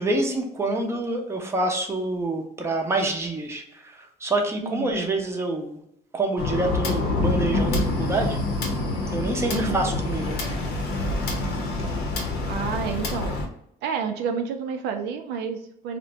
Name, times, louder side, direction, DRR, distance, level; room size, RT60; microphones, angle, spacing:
voice 1, 0.0-5.8 6.1-8.4 9.1-10.4, right 2 dB, 15° right, 2 dB, 0.6 m, -27 dB
voice 2, 4.6-5.0 9.5-9.9 12.5-13.4 13.8-16.0, right 6 dB, 90° right, 5 dB, 0.4 m, -30 dB
sound 1, 6.4-13.5, left 2 dB, 75° left, 0.8 m, -26 dB
2.5 x 2.1 x 3.8 m, 0.75 s
cardioid pair, 110°, 17 cm